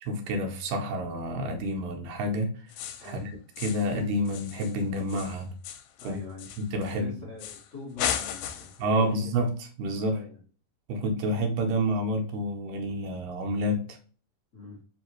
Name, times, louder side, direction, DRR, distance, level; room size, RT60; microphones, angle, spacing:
voice 1, 0.0-2.5 3.0-3.3 3.6-5.5 6.0-6.2 6.7-7.1 8.8-9.5 9.8-10.2 10.9-14.0, equal, 75° right, 2 dB, 2.4 m, -28 dB
sound 1, 2.7-3.2 3.6-4.0 4.3-7.0 7.4-7.7 8.0-8.8, left 9 dB, 90° left, 2.3 m, -35 dB
voice 2, 6.0-6.5 6.8-9.2 10.1-10.4 14.5-14.8, left 3 dB, 70° left, -5 dB, 0.6 m, -43 dB
5.3 x 2.8 x 3.0 m, 0.40 s
omnidirectional pair, 4.0 m